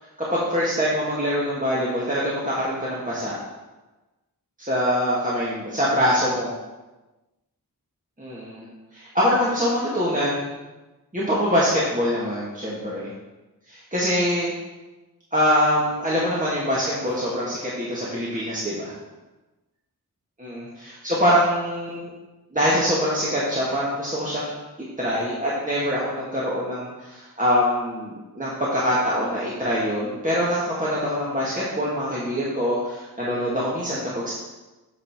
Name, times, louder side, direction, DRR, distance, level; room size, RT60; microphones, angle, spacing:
voice 1, 0.2-3.4 4.6-6.5 8.2-8.6 8.9-10.5 11.1-13.1 13.7-14.5 15.3-18.9 20.4-22.1 22.5-24.6 25.0-34.3, equal, 20° right, -7 dB, 1.5 m, -24 dB
7.9 x 4.1 x 4.5 m, 1.1 s
wide cardioid pair, 60°, 38 cm